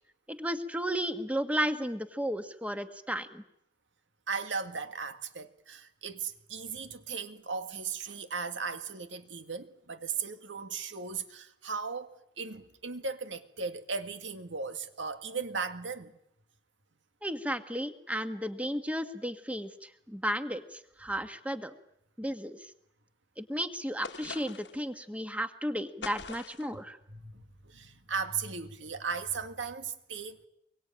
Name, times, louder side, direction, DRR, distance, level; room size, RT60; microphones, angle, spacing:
voice 1, 0.3-3.4 17.2-21.7 22.2-22.7 23.4-27.0, equal, 5° right, 1.6 m, -34 dB
voice 2, 4.3-16.1 27.1-30.5, right 5 dB, 85° right, 2.0 m, -37 dB
sound 1, 24.0-24.8 26.0-26.7, left 5 dB, 65° left, 1.3 m, -43 dB
24.5 x 23.5 x 9.0 m
head